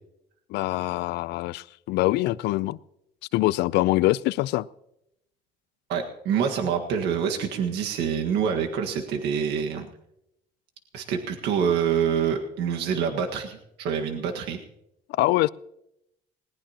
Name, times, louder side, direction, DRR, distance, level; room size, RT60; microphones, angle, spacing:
voice 1, 0.5-2.8 3.3-4.7 15.1-15.5, left 18 dB, 85° left, 0.5 m, -24 dB
voice 2, 5.9-9.9 10.9-14.6, right 7 dB, 85° right, 1.7 m, -26 dB
20.0 x 19.0 x 2.9 m
cardioid pair, 110°, 17 cm